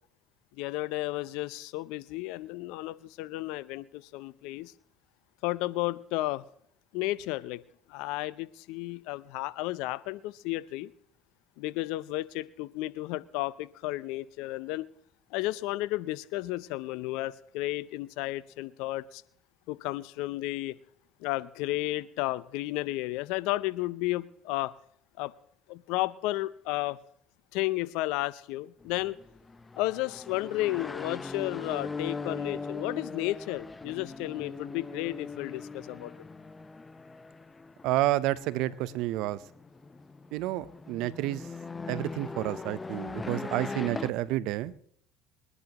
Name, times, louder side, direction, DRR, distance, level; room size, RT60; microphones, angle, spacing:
voice 1, 0.6-4.7 5.4-6.4 6.9-7.6 7.9-10.9 11.6-14.9 15.3-19.2 19.7-20.7 21.2-24.7 25.2-25.3 25.7-27.0 27.5-29.2 29.8-36.1, left 18 dB, 75° left, 18 dB, 0.6 m, -33 dB
sound 1, 28.8-44.1, left 3 dB, 20° left, 0.7 m, -40 dB
voice 2, 37.8-39.4 40.3-41.4 41.9-44.7, right 15 dB, 70° right, 17 dB, 0.7 m, -30 dB
22.0 x 11.0 x 3.0 m, 0.64 s
supercardioid pair, 75°, 0 cm